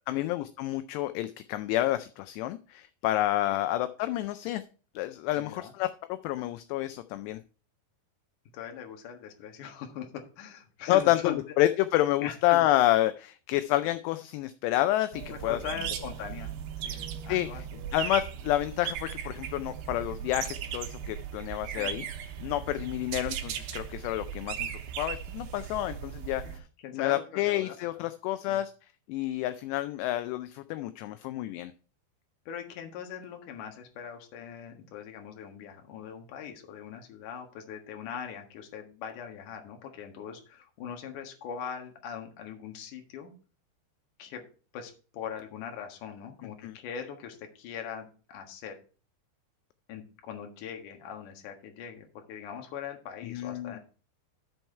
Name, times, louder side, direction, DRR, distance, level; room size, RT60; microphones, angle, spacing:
voice 1, 0.1-4.6 5.0-7.4 10.9-15.6 17.3-17.5 17.9-22.1 22.4-24.7 25.0-26.6 26.9-28.7 29.1-31.7 46.6-46.8 53.2-53.8, left 15 dB, 85° left, 11 dB, 2.5 m, -29 dB
voice 2, 5.4-5.7 8.5-11.4 12.2-12.6 15.3-16.6 16.8-17.8 21.7-21.9 26.4-26.5 26.8-28.0 28.5-28.6 32.5-43.3 44.2-44.5 44.7-48.8 49.9-53.8, left 8 dB, 60° left, 4 dB, 2.4 m, -41 dB
sound 1, 15.1-26.6, right 9 dB, 75° right, 2.6 m, -37 dB
13.5 x 4.6 x 4.5 m, 0.37 s
omnidirectional pair, 5.2 m